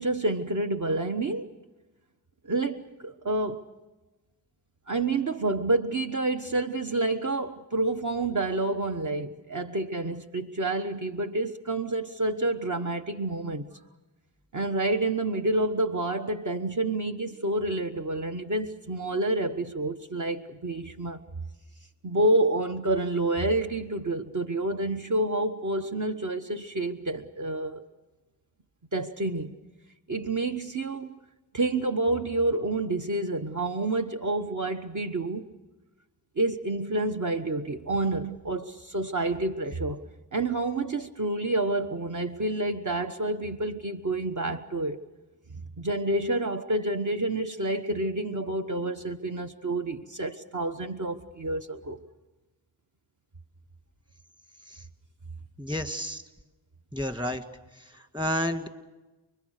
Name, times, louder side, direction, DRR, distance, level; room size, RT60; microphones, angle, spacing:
voice 1, 0.0-1.5 2.4-3.6 4.9-13.7 14.5-21.2 22.0-27.8 28.9-29.5 30.1-31.2 31.5-35.5 36.4-40.0 40.3-45.0 45.8-52.0, right 2 dB, 45° right, 1.2 m, -28 dB
voice 2, 55.6-56.2 56.9-57.4 58.1-58.7, equal, 10° right, 1.9 m, -30 dB
29.5 x 21.5 x 6.6 m
wide cardioid pair, 70°, 41 cm